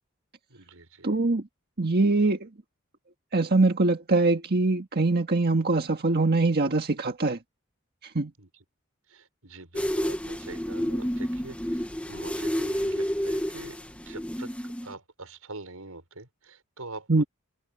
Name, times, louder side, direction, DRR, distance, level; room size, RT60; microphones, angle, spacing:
voice 1, 0.5-1.2 8.4-8.5 9.1-13.8 14.1-14.5 14.8-17.1, right 3 dB, 90° right, 5.8 m, -44 dB
voice 2, 1.0-1.5 1.8-2.5 3.3-7.4 8.0-8.3 17.1-17.2, right 3 dB, 50° right, 1.6 m, -23 dB
sound 1, 9.7-14.9, equal, 5° left, 1.1 m, -30 dB
head